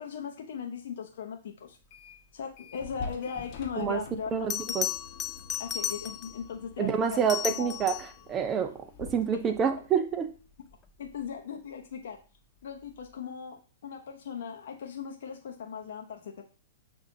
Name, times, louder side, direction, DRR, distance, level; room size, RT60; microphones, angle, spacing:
voice 1, 0.0-1.8 2.3-4.8 5.6-7.7 11.0-12.2 12.6-16.4, left 7 dB, 65° left, 3 dB, 0.7 m, -38 dB
sound 1, 1.7-2.3 2.6-11.0, left 4 dB, 45° left, 1.0 m, -48 dB
voice 2, 4.3-4.9 6.8-8.0 8.3-10.3, right 7 dB, 25° right, 8 dB, 0.6 m, -28 dB
Bell, 4.5-6.4 7.1-8.2 10.9-11.1, left 8 dB, 20° left, 0.3 m, -34 dB
5.9 x 2.6 x 2.7 m, 0.37 s
hypercardioid pair, 115°, 0 cm